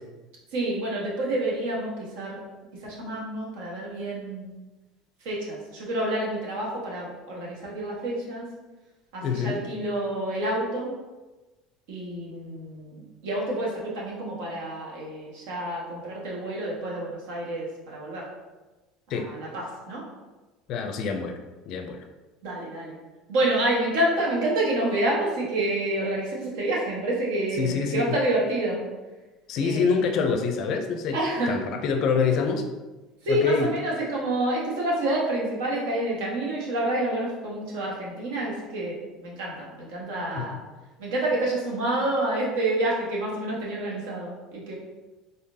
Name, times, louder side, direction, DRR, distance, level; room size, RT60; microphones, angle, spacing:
voice 1, 0.5-2.4 2.8-4.5 5.2-8.5 9.1-10.9 11.9-18.2 19.1-20.0 22.4-23.0 23.3-28.8 29.6-30.0 31.1-31.6 33.2-40.6 41.0-44.8, right 1 dB, 85° right, -4 dB, 1.4 m, -28 dB
voice 2, 9.2-9.6 19.1-19.3 20.7-21.4 21.7-22.1 27.6-28.1 29.5-31.2 31.5-32.6 33.3-33.7 40.3-40.6, left 5 dB, 45° left, 5 dB, 0.4 m, -26 dB
3.9 x 3.7 x 2.7 m, 1.2 s
cardioid pair, 160°, 0 cm